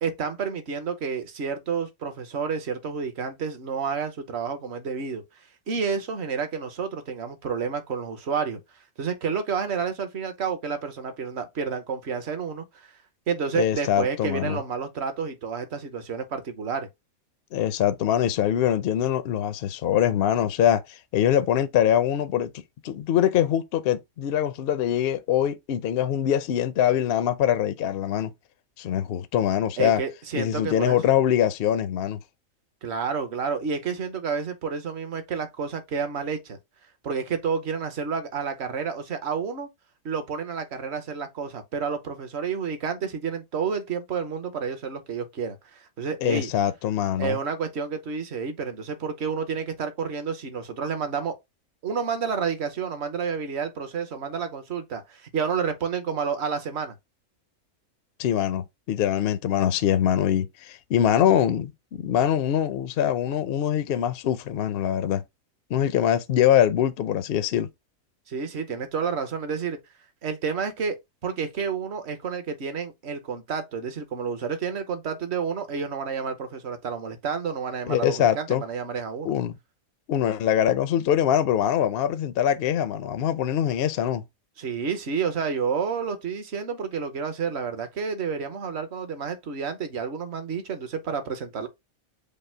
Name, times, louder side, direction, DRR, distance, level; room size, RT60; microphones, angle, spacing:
voice 1, 0.0-5.2 5.7-8.6 9.0-12.9 13.3-16.9 29.8-31.0 32.8-36.6 37.0-39.7 40.0-46.5 47.2-51.4 51.8-56.9 68.3-69.8 70.2-79.3 84.6-91.7, right 6 dB, 55° right, 1.1 m, -30 dB
voice 2, 13.5-14.6 17.5-22.5 22.8-28.3 28.8-30.0 30.3-32.2 46.2-47.4 58.2-65.2 65.7-67.7 77.9-78.6 79.2-79.5 80.1-84.2, left 10 dB, 65° left, 0.6 m, -23 dB
5.3 x 2.0 x 4.3 m
omnidirectional pair, 1.5 m